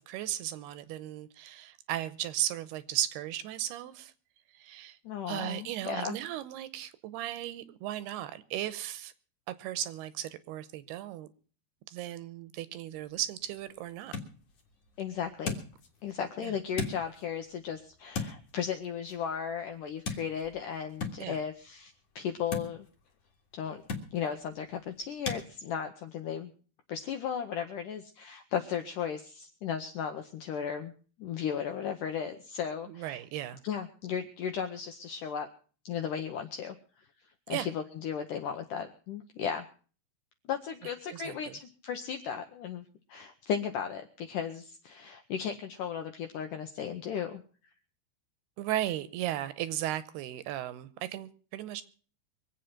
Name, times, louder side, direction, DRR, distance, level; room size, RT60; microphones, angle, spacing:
voice 1, 0.1-4.1 4.5-5.0 5.3-9.1 9.5-11.3 11.9-14.1 16.4-16.5 21.2-21.4 32.9-33.6 37.5-37.7 41.1-41.6 48.6-51.8, right 13 dB, 75° right, 2.7 m, -36 dB
voice 2, 5.0-6.2 15.0-15.6 16.0-22.9 23.5-23.8 24.1-26.5 26.9-30.9 31.2-33.2 33.6-35.5 35.9-36.8 37.5-39.7 40.5-47.4, left 8 dB, 75° left, 1.9 m, -35 dB
sound 1, 12.9-25.4, left 4 dB, 45° left, 2.5 m, -42 dB
24.0 x 8.4 x 5.8 m
omnidirectional pair, 4.9 m